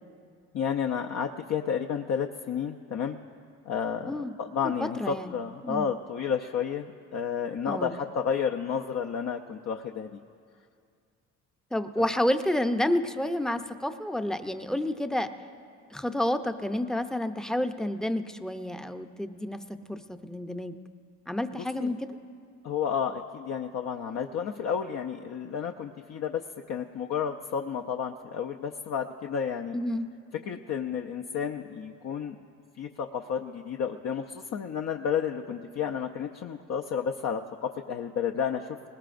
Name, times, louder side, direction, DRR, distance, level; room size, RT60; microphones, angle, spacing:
voice 1, 0.5-3.2 3.7-10.2 12.0-12.1 21.5-21.9 22.6-26.4 26.7-29.8 30.5-32.4 32.8-38.8, left 7 dB, 60° left, 3 dB, 0.6 m, -31 dB
voice 2, 4.6-5.3 5.6-5.9 7.7-8.0 11.7-15.3 15.9-19.6 19.9-20.8 21.3-22.1 29.7-30.1, left 1 dB, ahead, 8 dB, 0.6 m, -29 dB
20.5 x 19.0 x 2.6 m, 2.3 s
cardioid pair, 90°, 30 cm